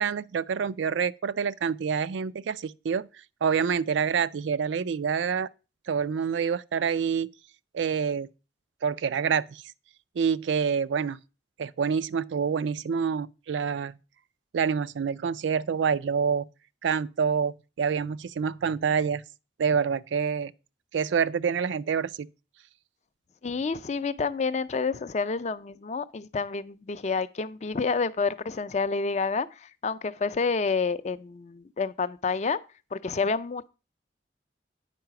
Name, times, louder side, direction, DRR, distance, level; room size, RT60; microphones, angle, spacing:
voice 1, 0.0-3.1 3.4-5.5 5.9-7.3 7.7-8.3 8.8-9.6 10.2-11.2 11.6-14.0 14.5-16.5 16.8-19.2 19.6-20.5 20.9-22.3, right 6 dB, 90° right, 0.4 m, -27 dB
voice 2, 23.4-32.6 32.9-33.7, left 4 dB, 40° left, 0.4 m, -29 dB
9.1 x 4.8 x 5.7 m
head